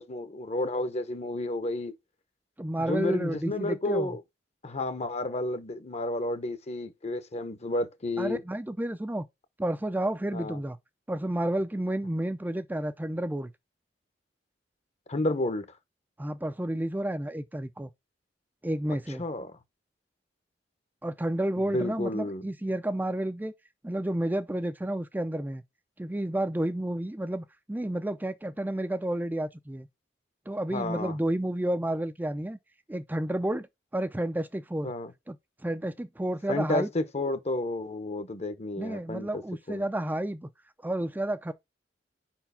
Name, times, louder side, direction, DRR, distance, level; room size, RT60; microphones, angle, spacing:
voice 1, 0.0-2.0 2.8-4.2 4.6-8.4 10.3-10.6 15.1-15.7 18.9-19.5 21.7-22.4 30.7-31.2 34.8-35.1 36.5-39.4 39.7-39.8, left 2 dB, 40° left, 0.9 m, -31 dB
voice 2, 2.6-4.1 8.2-9.3 9.6-10.8 11.1-13.5 16.2-17.9 18.6-19.2 21.0-23.5 23.8-25.6 26.0-29.9 30.5-32.6 32.9-33.7 33.9-34.9 35.3-36.9 38.8-40.5 40.8-41.5, right 1 dB, 10° right, 0.4 m, -31 dB
5.1 x 4.4 x 5.6 m
head